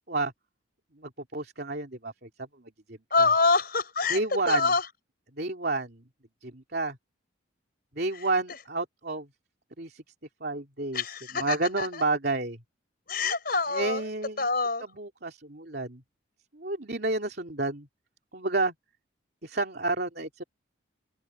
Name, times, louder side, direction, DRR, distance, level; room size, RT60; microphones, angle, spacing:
voice 1, 1.0-3.0 4.1-4.7 5.3-6.0 6.4-7.0 7.9-9.3 9.8-10.0 10.4-11.0 11.3-12.6 13.7-14.5 15.0-16.0 16.5-17.9 18.3-18.7 19.4-20.4, right 2 dB, 50° right, 3.1 m, -30 dB
voice 2, 3.1-4.2 4.5-4.9 10.9-12.0 13.1-14.1 14.4-14.9, left 4 dB, 45° left, 4.7 m, -26 dB
open air
head